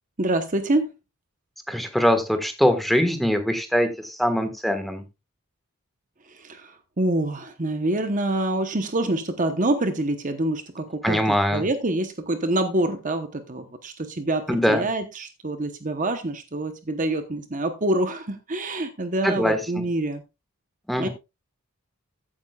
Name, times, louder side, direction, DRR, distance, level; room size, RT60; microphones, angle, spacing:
voice 1, 0.2-0.9 6.3-20.2 21.0-21.1, right 1 dB, 35° right, 8 dB, 0.9 m, -26 dB
voice 2, 1.7-5.0 11.0-11.6 14.5-14.8 19.2-19.8 20.9-21.1, equal, ahead, 7 dB, 1.5 m, -22 dB
15.0 x 8.7 x 2.3 m, 0.25 s
head